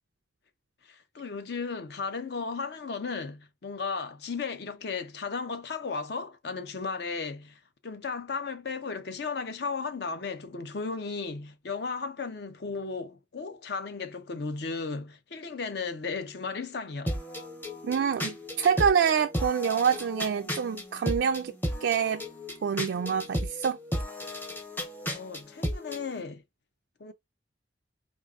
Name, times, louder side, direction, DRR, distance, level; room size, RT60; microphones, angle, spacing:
voice 1, 0.9-17.2 25.1-26.4 27.0-27.1, left 4 dB, 60° left, 0.6 m, -35 dB
sound 1, 17.1-26.0, equal, 10° left, 0.6 m, -34 dB
voice 2, 17.8-21.5 21.8-22.2 22.6-23.8, right 7 dB, 65° right, 0.3 m, -26 dB
4.5 x 2.5 x 2.4 m
head